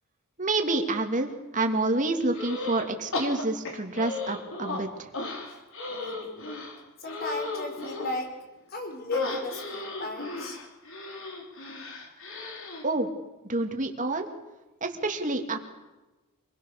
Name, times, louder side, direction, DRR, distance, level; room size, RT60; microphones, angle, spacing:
voice 1, 0.4-5.1 12.8-13.1 13.5-14.3 14.8-15.6, right 2 dB, 35° right, 4 dB, 2.7 m, -28 dB
sound 1, 2.3-2.9 3.1-4.8 5.1-8.2 9.1-12.8, left 3 dB, 60° left, 4.2 m, -35 dB
voice 2, 5.9-6.5 7.0-8.4 8.7-10.6, left 1 dB, 45° left, 3 dB, 5.7 m, -36 dB
27.0 x 21.5 x 6.8 m, 1.1 s
head